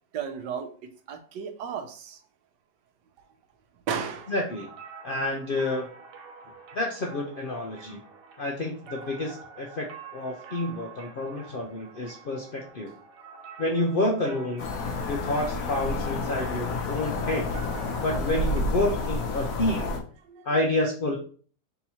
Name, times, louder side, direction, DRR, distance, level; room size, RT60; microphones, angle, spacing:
voice 1, 0.1-2.2 3.9-4.3 20.3-20.5, right 7 dB, 90° right, 8 dB, 1.3 m, -34 dB
sound 1, 4.0-18.6, right 5 dB, 60° right, 1.0 m, -47 dB
voice 2, 4.3-4.7 5.0-5.9 6.7-8.0 8.4-9.9 10.1-12.9 13.6-14.7 15.1-17.5 18.0-19.9 20.4-21.2, left 2 dB, 85° left, 0 dB, 0.4 m, -29 dB
sound 2, 14.6-20.0, left 2 dB, 60° left, 1.1 m, -30 dB
4.0 x 2.8 x 4.1 m, 0.43 s
omnidirectional pair, 1.8 m